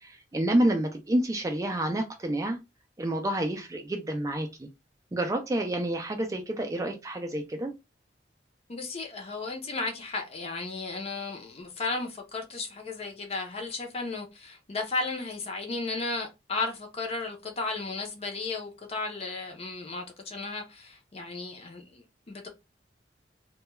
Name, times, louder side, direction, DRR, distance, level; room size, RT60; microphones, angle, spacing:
voice 1, 0.0-2.6 3.0-4.7 5.1-7.7, right 1 dB, 20° right, 0.3 m, -28 dB
voice 2, 8.7-22.5, left 3 dB, 35° left, 0.5 m, -34 dB
2.2 x 2.1 x 3.0 m
head